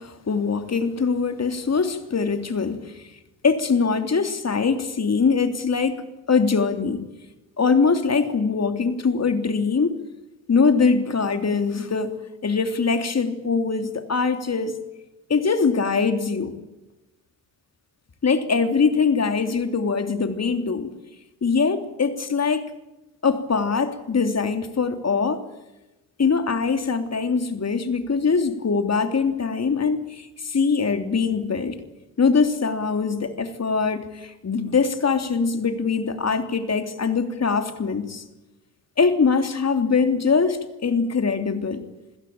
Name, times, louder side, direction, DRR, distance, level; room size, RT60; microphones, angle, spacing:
voice 1, 0.0-3.0 3.4-6.0 6.3-7.0 7.6-10.0 10.5-12.1 12.4-14.8 15.3-16.5 18.2-20.9 21.4-22.7 23.2-25.4 26.2-31.8 32.2-38.2 39.0-41.8, left 5 dB, 35° left, 8 dB, 3.2 m, -22 dB
27.5 x 16.5 x 8.8 m, 1.0 s
hypercardioid pair, 55°, 42 cm